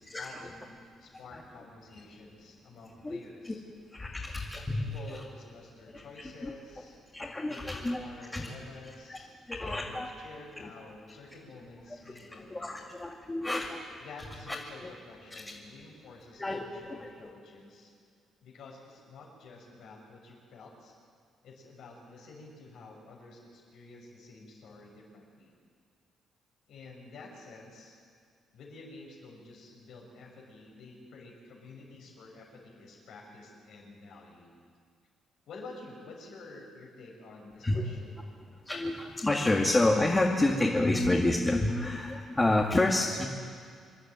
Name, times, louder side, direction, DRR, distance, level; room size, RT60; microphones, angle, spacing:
voice 1, 0.0-3.6 4.7-7.0 7.4-9.3 9.6-12.9 14.0-17.9 18.4-20.9 21.4-25.5 26.7-28.0 28.5-34.6 35.5-38.2, left 3 dB, 75° left, -1 dB, 6.3 m, -50 dB
voice 2, 3.9-5.2 5.9-6.0 6.4-6.5 7.1-8.0 8.3-8.5 9.1-9.2 9.5-10.1 10.6-10.7 12.2-13.9 14.5-14.6 14.8-14.9 15.3-15.4 16.4-17.0 37.6-37.8 38.6-43.2, left 2 dB, 20° left, -1 dB, 2.3 m, -29 dB
26.5 x 11.5 x 9.2 m, 2.2 s
cardioid pair, 90°, 0 cm